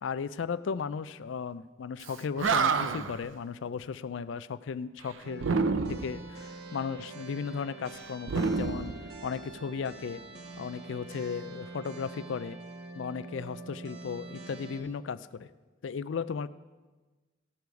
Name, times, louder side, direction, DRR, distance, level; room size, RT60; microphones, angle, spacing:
voice 1, 0.0-5.6 5.9-8.9 9.2-10.2 10.6-12.6 13.0-15.5 15.8-16.5, left 6 dB, 70° left, 16 dB, 0.4 m, -35 dB
Animal, 2.1-2.2 2.4-3.2 5.4-6.2 8.2-9.6, right 5 dB, 85° right, 0.6 m, -28 dB
sound 1, 5.2-14.8, right 3 dB, 60° right, 1.3 m, -45 dB
16.0 x 6.9 x 4.7 m, 1.3 s
head